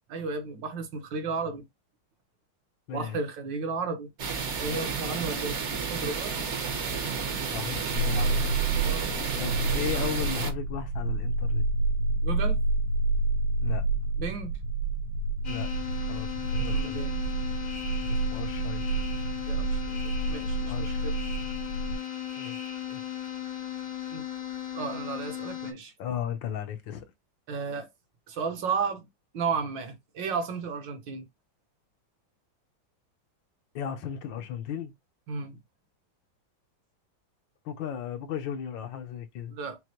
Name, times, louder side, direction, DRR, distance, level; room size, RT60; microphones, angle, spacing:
voice 1, 0.1-1.6 2.9-4.1 4.6-6.4 8.4-8.5 8.8-9.1 12.2-12.6 14.2-14.5 16.7-17.1 19.5-21.2 24.1-24.2 24.7-25.9 27.5-27.9 28.3-29.1 29.3-31.3 35.3-35.6 39.5-39.8, right 4 dB, 70° right, 1.6 m, -33 dB
sound 1, 4.2-10.5, right 5 dB, 50° right, 0.9 m, -31 dB
voice 2, 7.5-8.4 9.4-11.6 13.6-13.8 15.5-15.7 16.0-17.0 18.1-18.8 20.7-21.0 22.4-22.6 22.9-23.0 26.0-27.1 33.7-34.9 37.6-39.5, left 9 dB, 75° left, 1.5 m, -35 dB
sound 2, 8.0-22.0, right 3 dB, 90° right, 2.0 m, -29 dB
sound 3, 15.4-25.7, left 10 dB, 55° left, 0.4 m, -36 dB
6.3 x 2.1 x 2.9 m
omnidirectional pair, 2.1 m